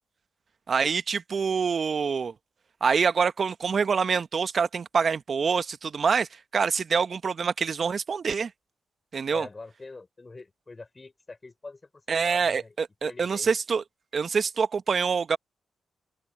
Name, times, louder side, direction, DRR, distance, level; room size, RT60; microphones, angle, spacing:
voice 1, 0.7-2.3 2.8-6.3 6.5-8.5 9.1-9.5 12.1-13.8 14.1-15.4, right 5 dB, 55° right, 1.3 m, -25 dB
voice 2, 9.3-12.7 13.0-13.5, left 3 dB, 35° left, 4.3 m, -44 dB
open air
hypercardioid pair, 40°, 0 cm